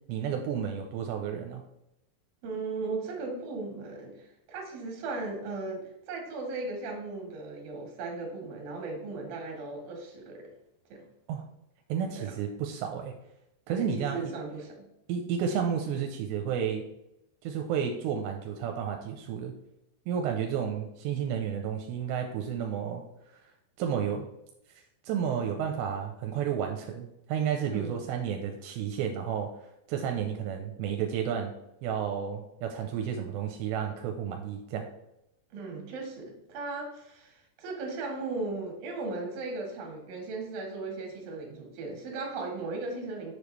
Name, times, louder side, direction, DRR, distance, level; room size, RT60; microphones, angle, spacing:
voice 1, 0.1-1.6 11.3-11.4 11.9-13.1 13.7-14.3 15.1-16.8 17.4-19.5 20.1-23.0 23.8-24.3 25.0-29.5 29.9-31.5 31.8-34.9, right 8 dB, 85° right, 3 dB, 2.8 m, -31 dB
voice 2, 2.4-10.5 10.9-11.0 12.2-12.3 13.7-14.9 27.7-28.0 35.5-43.3, right 3 dB, 60° right, 1 dB, 3.2 m, -37 dB
7.0 x 6.7 x 3.2 m, 0.85 s
omnidirectional pair, 5.0 m